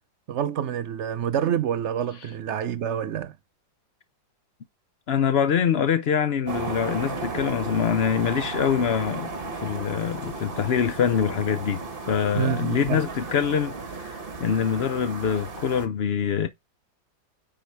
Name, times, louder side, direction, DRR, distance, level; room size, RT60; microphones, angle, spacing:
voice 1, 0.3-3.3 12.3-13.0, right 9 dB, 90° right, 0.6 m, -27 dB
voice 2, 5.1-16.5, left 7 dB, 90° left, 0.5 m, -25 dB
sound 1, 6.5-15.9, right 3 dB, 35° right, 1.3 m, -34 dB
9.7 x 3.8 x 4.6 m
omnidirectional pair, 2.0 m